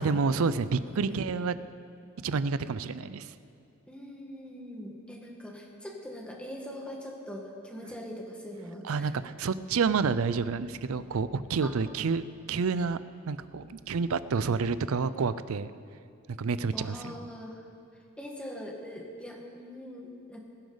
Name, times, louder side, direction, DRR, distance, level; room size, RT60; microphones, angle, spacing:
voice 1, 0.0-1.5 2.2-3.3 8.8-13.0 13.3-15.7 16.4-17.2, right 5 dB, 70° right, 15 dB, 0.5 m, -29 dB
voice 2, 3.9-9.1 11.6-11.7 16.7-17.6 18.2-20.4, equal, 5° left, 0 dB, 1.6 m, -42 dB
21.0 x 10.0 x 4.0 m, 2.4 s
head